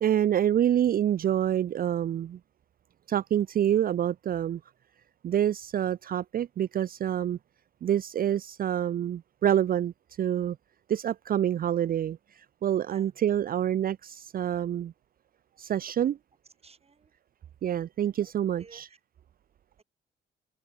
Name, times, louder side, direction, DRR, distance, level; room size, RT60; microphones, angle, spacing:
voice 1, 0.0-2.4 3.1-4.6 5.2-7.4 7.8-9.9 10.2-10.6 10.9-14.9 15.6-16.2 17.6-18.9, right 10 dB, 45° right, 0.5 m, -27 dB
voice 2, 16.6-17.1 18.2-19.0 19.8-19.9, right 4 dB, 30° right, 5.7 m, -55 dB
open air
cardioid pair, 90°, 20 cm